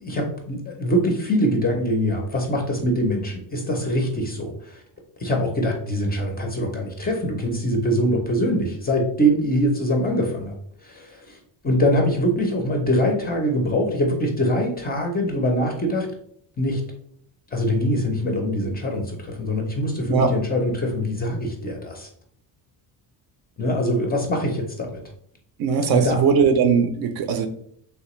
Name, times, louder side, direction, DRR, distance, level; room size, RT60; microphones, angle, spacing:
voice 1, 0.0-4.8 5.2-10.5 10.8-11.4 11.6-16.1 16.6-16.8 17.5-22.1 23.6-25.0 25.9-26.2, equal, 20° left, 2 dB, 0.4 m, -23 dB
voice 2, 25.6-27.5, right 6 dB, 55° right, 8 dB, 0.5 m, -19 dB
3.2 x 2.8 x 3.0 m, 0.66 s
cardioid pair, 145°, 46 cm